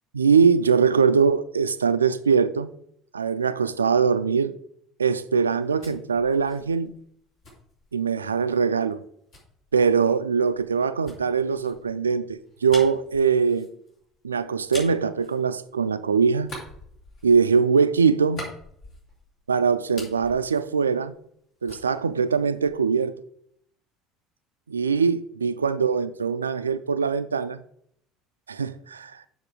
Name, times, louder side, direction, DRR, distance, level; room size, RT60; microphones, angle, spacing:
voice 1, 0.1-2.7 3.1-4.6 5.0-6.9 7.9-9.0 9.7-13.7 14.2-16.5 17.2-18.5 19.5-21.1 21.6-23.1 24.7-27.6 28.5-29.1, right 5 dB, 85° right, 0.3 m, -22 dB
sound 1, 5.4-8.4 9.3-16.0 16.4-19.4 19.7-21.4 21.7-23.0, left 1 dB, 50° left, 3.3 m, -44 dB
7.1 x 5.5 x 4.7 m
figure-of-eight pair, 60°, 0 cm